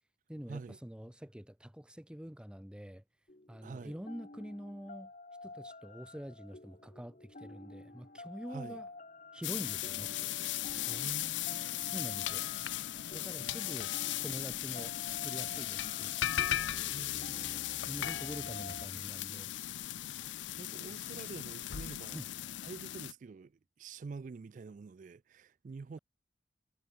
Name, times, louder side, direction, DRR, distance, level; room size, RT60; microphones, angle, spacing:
voice 1, 0.3-3.0 3.5-5.1 5.4-8.9 9.3-10.1 11.9-12.5 13.1-13.9 14.2-16.1 17.9-19.5 22.1-22.3, equal, 5° right, 0.8 m, -45 dB
sound 1, 3.3-18.9, left 2 dB, 40° left, 1.5 m, -50 dB
voice 2, 3.6-4.0 8.5-8.8 10.9-11.9 16.9-17.6 20.6-22.3 22.6-26.0, right 4 dB, 45° right, 0.3 m, -47 dB
sound 2, 7.5-16.3, left 2 dB, 65° left, 2.9 m, -70 dB
sound 3, 9.4-23.1, left 13 dB, 80° left, 0.5 m, -37 dB
head